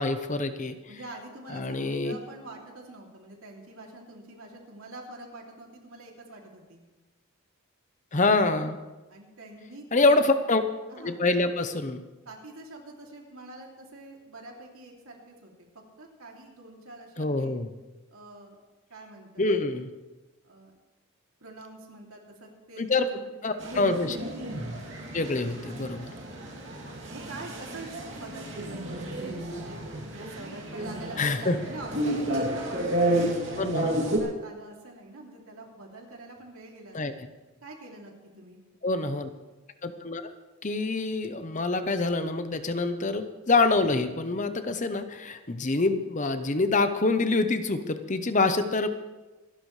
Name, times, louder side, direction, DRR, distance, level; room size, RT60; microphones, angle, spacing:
voice 1, 0.0-0.8 1.5-2.1 8.1-8.8 9.9-10.6 11.0-12.0 17.2-17.7 19.4-19.9 22.8-23.1 23.4-24.2 25.1-26.1 31.2-31.5 33.6-34.0 36.9-37.1 38.8-39.3 39.8-40.3 40.6-48.9, left 3 dB, 35° left, 9 dB, 0.8 m, -26 dB
voice 2, 0.9-6.8 9.1-10.3 10.9-11.3 12.2-15.7 16.0-17.5 18.1-18.6 18.9-19.5 20.4-20.7 21.4-23.9 25.2-25.4 26.8-29.8 30.1-33.3 34.0-37.2 37.6-38.6, right 2 dB, 75° right, 0 dB, 2.9 m, -45 dB
sound 1, 23.6-34.2, right 1 dB, 55° right, 2.7 m, -31 dB
26.0 x 12.0 x 3.3 m, 1.1 s
head